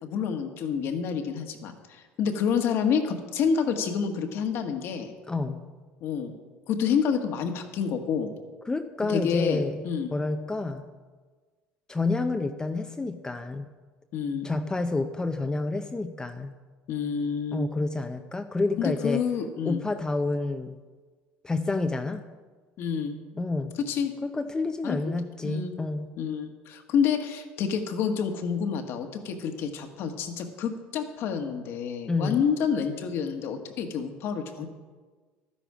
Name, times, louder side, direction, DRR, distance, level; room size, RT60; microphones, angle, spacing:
voice 1, 0.0-5.1 6.0-6.3 6.7-8.3 9.1-10.1 14.1-14.5 16.9-17.7 18.8-19.8 22.8-23.2 23.9-24.1 24.8-25.1 25.4-25.7 26.2-34.7, left 7 dB, 65° left, 5 dB, 1.6 m, -28 dB
voice 2, 5.3-5.6 8.7-9.9 10.1-10.8 11.9-13.6 14.4-16.5 17.5-19.2 19.6-20.8 21.4-22.2 23.3-23.7 24.2-26.2 32.1-32.4, left 3 dB, 15° left, 7 dB, 0.6 m, -29 dB
12.5 x 10.0 x 5.0 m, 1.4 s
supercardioid pair, 100°, 5 cm